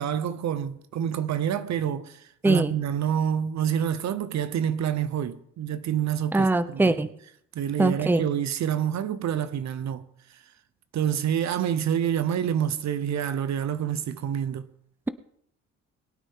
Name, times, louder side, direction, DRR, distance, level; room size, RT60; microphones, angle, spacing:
voice 1, 0.0-7.0 7.5-10.0 10.9-14.6, right 9 dB, 65° right, 0.9 m, -27 dB
voice 2, 6.3-7.1 7.8-8.2, right 2 dB, 5° right, 0.7 m, -22 dB
21.5 x 9.1 x 3.7 m
cardioid pair, 90°, 30 cm